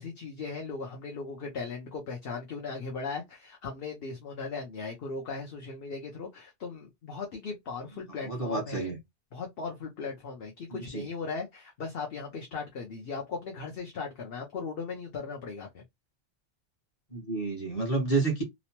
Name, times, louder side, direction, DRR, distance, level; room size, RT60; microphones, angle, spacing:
voice 1, 0.0-8.9 9.3-15.8, left 4 dB, 65° left, 0.9 m, -38 dB
voice 2, 8.2-9.0 10.7-11.1 17.1-18.4, right 3 dB, 35° left, 1.1 m, -30 dB
3.0 x 2.0 x 2.8 m
omnidirectional pair, 1.1 m